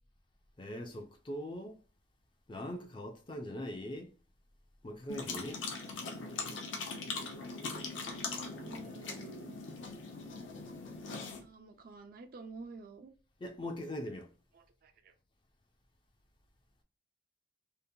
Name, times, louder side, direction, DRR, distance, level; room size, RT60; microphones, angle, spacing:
voice 1, 0.6-1.8 2.5-4.1 4.8-5.6 13.4-14.3, left 1 dB, 25° left, 0.4 m, -41 dB
sound 1, 5.1-11.4, left 4 dB, 75° left, 0.6 m, -41 dB
voice 2, 8.5-9.6 11.4-13.1 14.5-15.1, right 4 dB, 50° right, 0.3 m, -50 dB
2.8 x 2.1 x 2.6 m
head